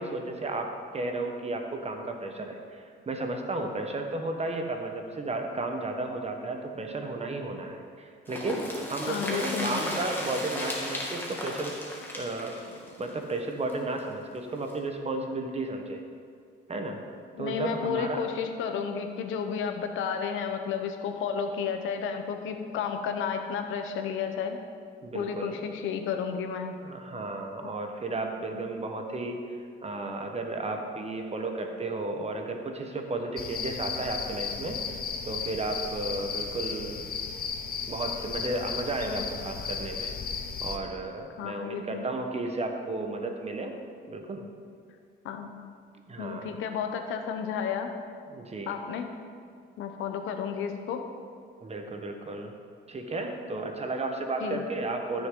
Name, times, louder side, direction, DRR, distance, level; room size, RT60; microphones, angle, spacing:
voice 1, 0.0-11.8 12.1-16.0 16.7-17.0 17.4-18.3 25.0-25.6 26.8-35.0 35.2-37.1 37.9-40.1 40.6-43.7 44.1-44.5 46.1-46.6 48.3-48.8 51.6-52.5 52.9-55.3, right 2 dB, 30° right, 3 dB, 1.2 m, -33 dB
sound 1, 8.3-14.0 14.3-14.4 14.7-14.8, left 1 dB, 10° left, 2.2 m, -35 dB
voice 2, 9.1-9.9 17.4-24.6 25.1-26.7 28.5-28.6 39.1-39.2 41.4-42.0 45.2-45.5 46.2-47.9 48.7-49.1 49.8-51.0 54.4-54.7, left 7 dB, 90° left, 5 dB, 0.9 m, -32 dB
sound 2, 33.4-40.8, left 6 dB, 50° left, 0.9 m, -35 dB
13.5 x 6.5 x 3.8 m, 2.2 s
cardioid pair, 90°, 20 cm